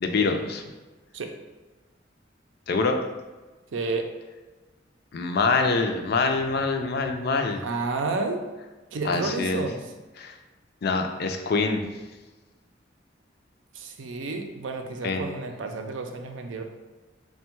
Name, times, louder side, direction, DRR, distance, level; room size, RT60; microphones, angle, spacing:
voice 1, 0.0-0.6 2.7-3.0 5.1-7.6 9.0-9.6 10.2-10.3 10.8-11.8 15.0-15.2, left 4 dB, 55° left, 5 dB, 0.4 m, -25 dB
voice 2, 3.7-4.1 7.4-8.4 8.9-9.9 13.7-16.6, right 3 dB, 80° right, 4 dB, 0.5 m, -31 dB
3.5 x 2.2 x 4.4 m, 1.2 s
head